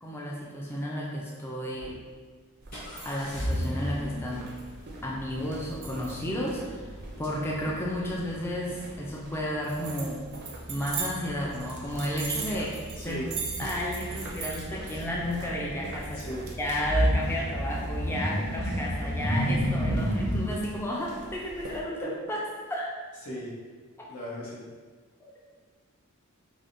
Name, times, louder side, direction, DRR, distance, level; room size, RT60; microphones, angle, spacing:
voice 1, 0.0-1.9 3.0-4.5 5.0-6.9 7.2-10.3 10.7-13.2 13.6-22.9 25.2-25.3, equal, 10° left, -3 dB, 0.3 m, -32 dB
sound 1, 1.8-1.9 2.7-20.5, equal, 40° left, 1.3 m, -33 dB
sound 2, 2.6-21.8, right 4 dB, 50° right, 0.5 m, -42 dB
voice 2, 13.0-13.3 16.1-16.4 23.2-23.5 24.1-24.6, equal, 85° left, -6 dB, 1.1 m, -37 dB
4.7 x 2.1 x 2.6 m, 1.5 s
head